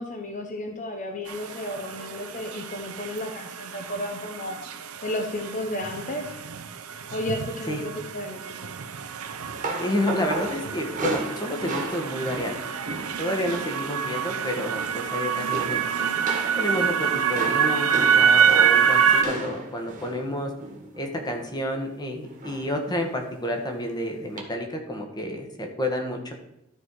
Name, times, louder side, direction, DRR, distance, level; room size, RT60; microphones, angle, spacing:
voice 1, 0.0-4.6 5.0-6.3 7.1-8.7, left 1 dB, 35° left, 3 dB, 0.9 m, -33 dB
sound 1, 1.3-19.2, right 7 dB, 85° right, 0.7 m, -26 dB
sound 2, 9.2-13.8 14.0-14.4 14.7-15.1 15.5-21.5 22.4-22.8 23.1-23.3 24.4-24.5, right 2 dB, 40° right, 1.7 m, -35 dB
voice 2, 9.8-12.6 13.2-16.1 16.6-20.5 21.0-26.3, left 1 dB, 20° left, 3 dB, 1.4 m, -30 dB
13.0 x 4.3 x 4.7 m, 0.90 s
head